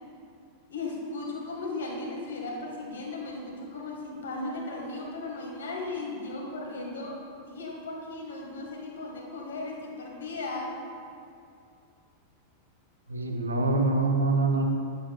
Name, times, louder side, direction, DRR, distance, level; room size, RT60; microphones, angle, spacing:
voice 1, 0.7-10.8, left 2 dB, 65° left, -1 dB, 1.6 m, -36 dB
voice 2, 13.1-14.6, right 3 dB, 80° right, 2 dB, 0.8 m, -25 dB
9.4 x 8.5 x 2.3 m, 2.4 s
figure-of-eight pair, 90°, 0 cm